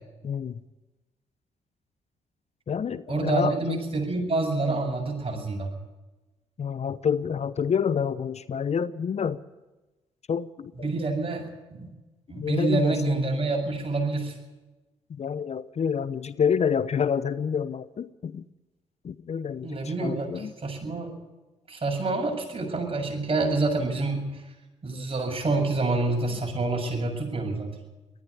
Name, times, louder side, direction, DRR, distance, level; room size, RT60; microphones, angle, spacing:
voice 1, 0.2-0.6 2.7-3.8 6.6-9.4 10.3-10.9 12.4-13.2 15.1-18.4 19.0-20.5 24.9-25.0, left 7 dB, 45° left, 16 dB, 0.8 m, -28 dB
voice 2, 3.1-5.7 10.8-11.9 12.3-14.4 19.6-21.1 21.7-24.4 24.8-27.8, right 3 dB, 40° right, 2 dB, 7.2 m, -27 dB
19.5 x 14.5 x 9.8 m, 1.1 s
hypercardioid pair, 45°, 15 cm